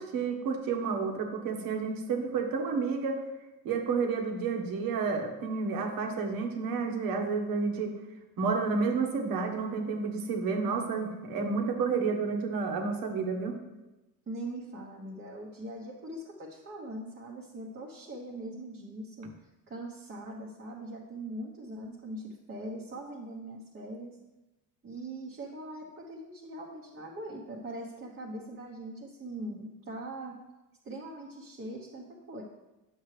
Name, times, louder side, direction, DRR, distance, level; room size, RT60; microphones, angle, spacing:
voice 1, 0.0-3.2 3.6-7.9 8.4-13.6, right 4 dB, 70° right, 3 dB, 1.4 m, -30 dB
voice 2, 14.3-19.3 19.7-24.2 24.8-30.4 30.8-32.4, right 1 dB, 30° right, -3 dB, 1.0 m, -41 dB
9.3 x 7.2 x 3.3 m, 1.0 s
cardioid pair, 165°, 36 cm